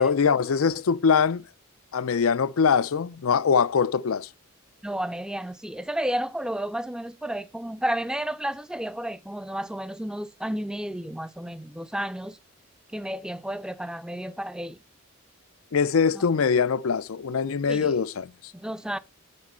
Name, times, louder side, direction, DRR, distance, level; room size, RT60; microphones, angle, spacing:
voice 1, 0.0-1.4 1.9-4.3 15.7-18.5, left 6 dB, 85° left, 0.5 m, -23 dB
voice 2, 4.8-12.4 12.9-14.8 16.1-16.2 17.7-18.0 18.5-19.0, right 1 dB, 5° right, 0.4 m, -32 dB
9.7 x 6.1 x 4.3 m
head